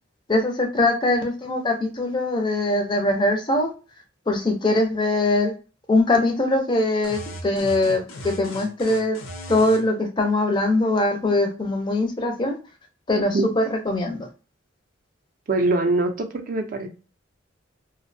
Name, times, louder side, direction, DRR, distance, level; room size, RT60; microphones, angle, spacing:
voice 1, 0.3-3.7 4.3-5.5 5.9-9.2 9.5-12.6 13.1-14.3, left 2 dB, 25° left, 0.4 m, -22 dB
sound 1, 7.0-9.9, left 1 dB, 90° left, 0.6 m, -37 dB
voice 2, 13.2-13.5 15.5-16.9, right 2 dB, 45° right, 0.4 m, -23 dB
2.5 x 2.0 x 2.5 m
head